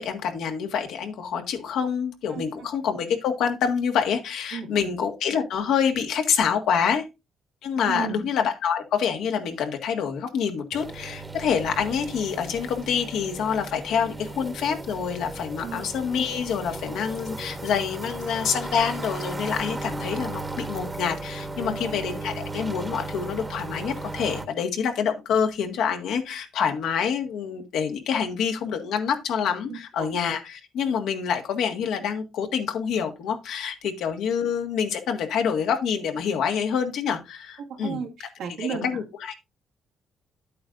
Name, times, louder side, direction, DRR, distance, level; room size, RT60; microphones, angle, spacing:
voice 1, 0.0-7.1 7.6-38.0 38.6-39.3, left 7 dB, 85° left, 1.7 m, -27 dB
voice 2, 2.3-2.7 4.5-4.9 7.8-8.3 15.6-15.9 21.6-21.9 29.7-30.1 37.6-38.9, right 6 dB, 85° right, 2.2 m, -34 dB
sound 1, 10.7-24.5, right 2 dB, 15° right, 1.1 m, -35 dB
10.5 x 8.5 x 2.6 m
cardioid pair, 90°, 0 cm